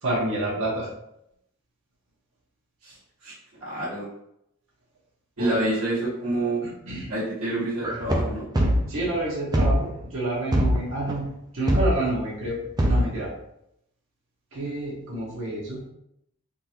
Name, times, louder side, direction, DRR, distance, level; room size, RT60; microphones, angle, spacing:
voice 1, 0.0-0.9 5.4-5.6 5.9-6.0 6.9-7.1 8.9-11.2 11.5-12.6 12.9-13.3 14.5-15.8, right 1 dB, 60° right, -5 dB, 1.0 m, -28 dB
voice 2, 3.6-4.1 5.4-6.6 7.1-8.4, right 1 dB, 85° right, -8 dB, 1.4 m, -27 dB
sound 1, 7.8-9.2 9.5-10.0 10.5-11.1 11.7-12.1 12.5-12.6 12.8-13.2, equal, 20° right, 0.4 m, -22 dB
3.6 x 2.6 x 2.9 m, 0.78 s
head